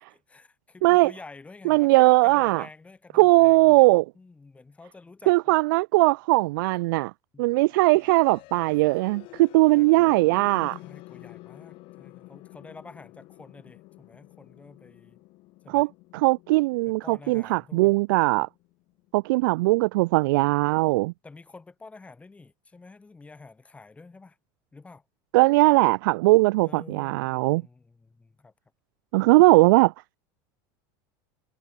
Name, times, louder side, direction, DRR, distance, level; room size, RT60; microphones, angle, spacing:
voice 1, 0.1-3.8 4.1-5.6 7.3-7.5 8.7-8.9 9.6-10.2 10.8-15.2 15.6-15.9 16.8-17.9 21.2-24.4 24.7-25.0 26.6-28.5, left 3 dB, 10° left, 2.8 m, -48 dB
voice 2, 0.8-1.1 1.7-2.6 3.1-4.1 5.3-7.1 7.4-10.8 15.7-15.9 16.1-18.5 19.1-21.1 25.3-27.6 29.1-29.9, right 22 dB, 80° right, 0.7 m, -20 dB
sound 1, 7.7-19.6, left 21 dB, 55° left, 7.7 m, -49 dB
supercardioid pair, 140°, 11 cm